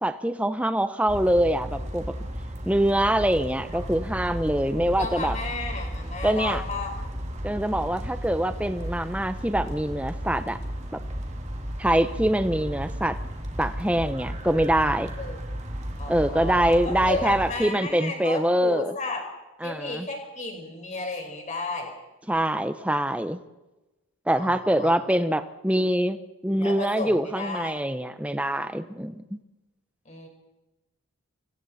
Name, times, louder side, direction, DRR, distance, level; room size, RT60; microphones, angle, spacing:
voice 1, 0.0-2.2 2.7-5.3 6.2-6.6 7.4-10.6 10.9-11.0 11.8-13.2 13.6-15.1 16.1-18.9 19.6-20.1 22.3-23.4 24.3-26.2 26.4-29.4, right 1 dB, 5° right, 10 dB, 1.0 m, -24 dB
sound 1, 1.1-17.5, equal, 30° right, 2.4 m, -34 dB
voice 2, 5.0-6.9 15.2-15.5 16.0-19.3 19.6-21.9 24.4-24.9 26.6-27.8 30.0-30.3, left 2 dB, 35° left, 3 dB, 4.8 m, -33 dB
29.5 x 24.0 x 4.3 m, 1.0 s
head